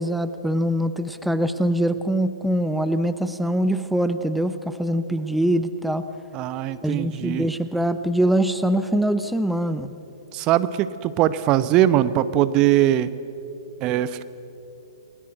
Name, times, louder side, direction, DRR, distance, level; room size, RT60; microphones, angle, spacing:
voice 1, 0.0-6.0 6.8-9.9, right 1 dB, ahead, 11 dB, 0.9 m, -23 dB
voice 2, 6.3-7.5 10.3-13.1 13.8-14.2, right 12 dB, 30° right, 14 dB, 0.9 m, -21 dB
29.0 x 21.5 x 8.0 m, 2.9 s
figure-of-eight pair, 120°, 2 cm